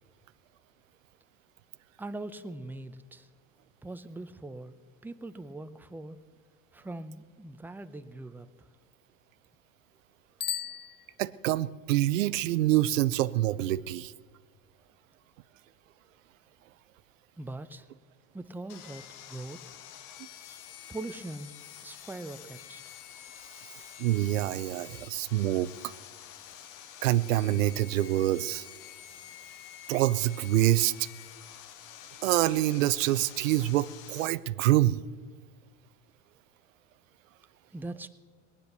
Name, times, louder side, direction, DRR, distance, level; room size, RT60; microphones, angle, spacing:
voice 1, 2.0-3.3 3.8-4.7 5.0-6.2 6.7-8.7 17.4-17.9 18.3-19.8 20.9-21.5 21.8-22.8 37.7-38.1, right 2 dB, 5° right, 10 dB, 0.7 m, -41 dB
Bicycle bell, 10.3-11.7, left 9 dB, 30° left, 0.5 m, -37 dB
voice 2, 11.2-14.1 24.0-25.9 27.0-28.7 29.9-31.1 32.2-35.0, right 15 dB, 85° right, 16 dB, 0.6 m, -26 dB
Sawing, 18.7-34.3, left 11 dB, 55° left, 1.1 m, -48 dB
18.5 x 10.0 x 6.7 m, 1.5 s
hypercardioid pair, 90°, 38 cm